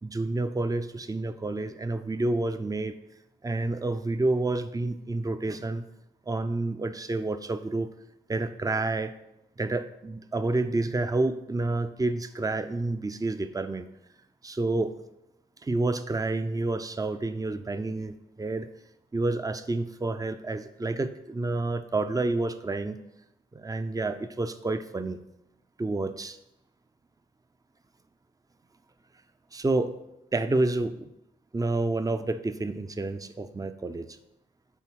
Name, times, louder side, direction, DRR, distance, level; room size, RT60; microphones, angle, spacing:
voice 1, 0.0-3.0 3.4-5.8 6.3-7.9 8.3-9.1 9.6-13.9 14.4-14.9 15.6-18.7 19.1-23.0 23.5-25.2 25.8-26.4 29.5-29.9 30.3-31.1 31.5-34.2, right 2 dB, 20° right, 10 dB, 0.5 m, -29 dB
7.1 x 4.1 x 4.6 m, 0.87 s
supercardioid pair, 45°, 20 cm